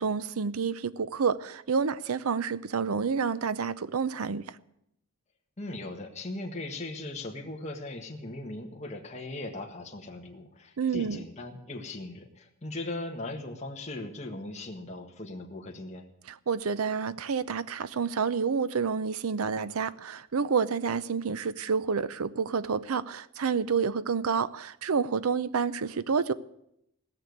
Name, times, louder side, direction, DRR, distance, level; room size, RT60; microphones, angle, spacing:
voice 1, 0.0-4.6 10.8-11.2 16.3-26.3, right 5 dB, 85° right, 0.6 m, -29 dB
voice 2, 5.6-16.0, left 2 dB, 30° left, 1.6 m, -39 dB
17.0 x 6.8 x 9.4 m
head